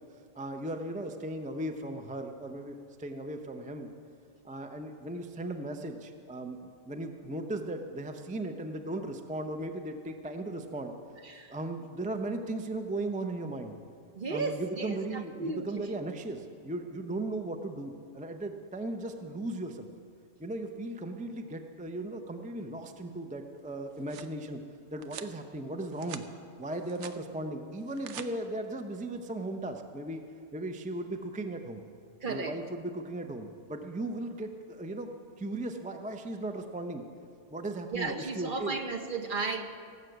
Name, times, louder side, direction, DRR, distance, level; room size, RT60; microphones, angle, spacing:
voice 1, 0.3-3.9 4.4-10.9 11.5-13.8 14.3-19.9 20.4-24.6 24.9-26.2 26.6-30.2 30.5-31.8 32.3-35.1 35.4-37.0 37.5-38.8, right 2 dB, 10° right, 6 dB, 0.5 m, -37 dB
voice 2, 11.2-11.6 14.1-15.9 32.2-32.6 37.9-39.6, right 3 dB, 45° right, 5 dB, 1.1 m, -34 dB
sound 1, 23.7-24.3 25.0-25.3 25.8-26.3 26.6-27.2 27.8-28.3, right 9 dB, 75° right, 1.0 m, -45 dB
17.5 x 7.1 x 7.9 m, 2.3 s
omnidirectional pair, 1.2 m